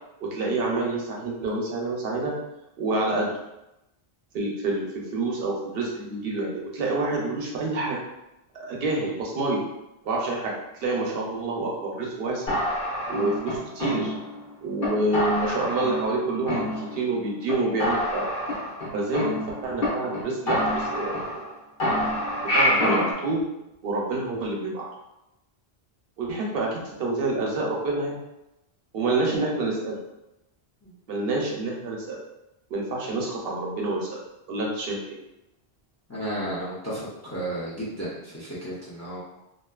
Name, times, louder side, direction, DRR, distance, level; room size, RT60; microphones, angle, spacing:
voice 1, 0.2-2.3 2.8-3.3 4.3-8.0 8.6-9.6 10.0-12.4 13.1-14.1 14.6-18.3 18.9-19.3 19.6-21.4 22.4-23.4 23.8-24.9 26.2-28.2 28.9-30.0 31.1-32.2 32.7-34.2 34.5-35.2, right 2 dB, 70° right, -2 dB, 0.8 m, -27 dB
sound 1, 12.5-14.4 14.8-14.9 15.1-16.2 16.5-17.2 17.5-17.6 17.8-19.9 20.1-20.2 20.5-21.5 21.8-23.1, left 1 dB, 60° left, 1.1 m, -27 dB
voice 2, 36.1-39.2, right 1 dB, 20° left, -7 dB, 0.5 m, -33 dB
2.6 x 2.4 x 2.2 m, 0.92 s
omnidirectional pair, 1.1 m